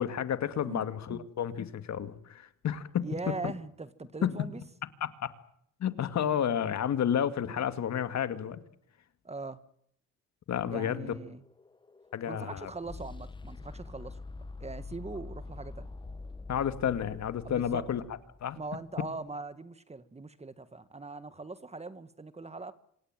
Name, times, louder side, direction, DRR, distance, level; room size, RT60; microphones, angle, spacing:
voice 1, 0.0-3.1 4.2-4.4 5.0-5.3 5.8-8.6 10.5-11.1 12.1-12.7 16.5-18.0 18.4-18.6, left 9 dB, 65° left, 2.3 m, -31 dB
voice 2, 0.6-1.3 3.0-4.6 9.2-9.6 10.7-11.4 12.3-14.2 14.6-15.9 17.4-17.9 18.6-22.7, right 3 dB, 20° right, 1.7 m, -41 dB
sound 1, 11.2-18.8, left 3 dB, 15° left, 1.0 m, -46 dB
27.0 x 17.5 x 9.2 m
cardioid pair, 90°, 30 cm